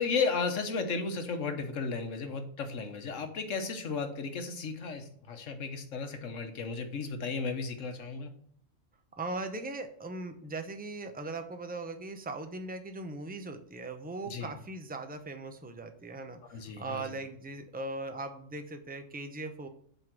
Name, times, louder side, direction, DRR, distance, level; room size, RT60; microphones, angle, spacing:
voice 1, 0.0-8.3 14.3-14.5 16.5-17.2, left 4 dB, 75° left, 7 dB, 1.4 m, -34 dB
voice 2, 9.2-19.7, right 2 dB, 10° right, 7 dB, 0.6 m, -39 dB
8.0 x 3.8 x 6.0 m, 0.62 s
omnidirectional pair, 1.3 m